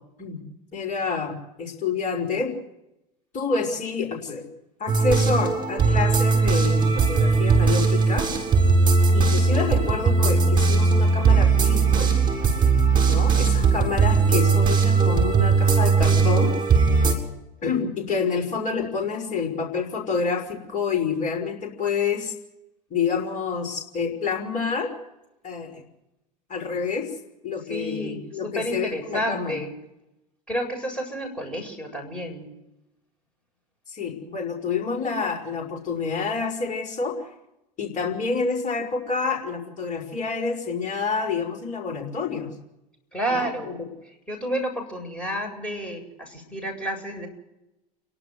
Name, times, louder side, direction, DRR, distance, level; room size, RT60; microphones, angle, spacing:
voice 1, 0.7-2.5 3.3-4.5 4.8-8.3 9.1-12.2 13.1-16.5 17.6-22.3 22.9-24.9 25.4-25.8 26.5-27.1 27.4-29.6 33.9-37.3 37.8-42.5 43.3-43.8, left 5 dB, 40° left, 1 dB, 5.8 m, -28 dB
sound 1, 4.9-17.1, right 4 dB, 20° right, 7.2 m, -19 dB
voice 2, 27.7-29.7 30.5-32.5 43.1-43.8 44.3-47.3, equal, 5° left, 2 dB, 8.0 m, -30 dB
30.0 x 12.0 x 8.0 m, 0.90 s
hypercardioid pair, 85°, 20 cm